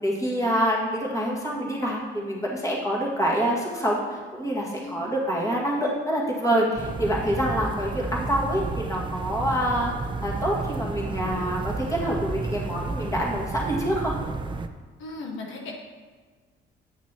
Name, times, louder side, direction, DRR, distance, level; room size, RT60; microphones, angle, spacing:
voice 1, 0.0-9.9 10.2-14.1, equal, 15° left, -3 dB, 1.9 m, -26 dB
voice 2, 4.8-5.1 15.0-15.7, left 3 dB, 75° left, 0 dB, 1.2 m, -37 dB
sound 1, 6.8-14.7, right 3 dB, 25° right, 0.5 m, -32 dB
9.7 x 5.9 x 2.9 m, 1.5 s
cardioid pair, 90°, 20 cm